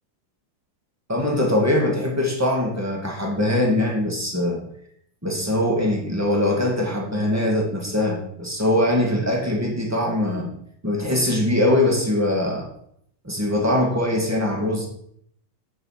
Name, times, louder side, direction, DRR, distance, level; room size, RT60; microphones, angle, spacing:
voice 1, 1.1-4.6 5.2-10.5 10.8-12.7 13.2-14.9, left 1 dB, 10° right, -1 dB, 1.0 m, -22 dB
7.3 x 7.0 x 7.5 m, 0.70 s
omnidirectional pair, 4.1 m